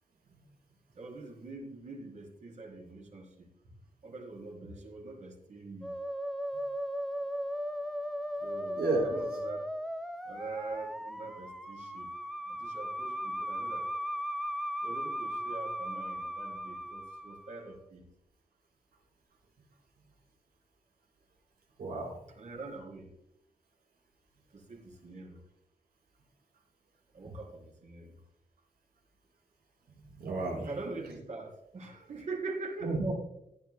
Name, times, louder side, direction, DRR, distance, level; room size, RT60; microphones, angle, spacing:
voice 1, 1.0-3.5 4.0-5.9 8.4-9.6 10.3-12.1 12.5-13.9 14.8-18.1 22.3-23.1 24.5-25.4 27.1-28.2 30.6-33.0, right 3 dB, 50° right, 0 dB, 3.7 m, -43 dB
Musical instrument, 5.8-17.6, equal, ahead, 0.5 m, -37 dB
voice 2, 8.8-9.1 21.8-22.1 30.2-30.7 32.8-33.1, right 2 dB, 85° right, -2 dB, 5.3 m, -31 dB
17.5 x 11.5 x 2.3 m, 0.79 s
wide cardioid pair, 165°, 15 cm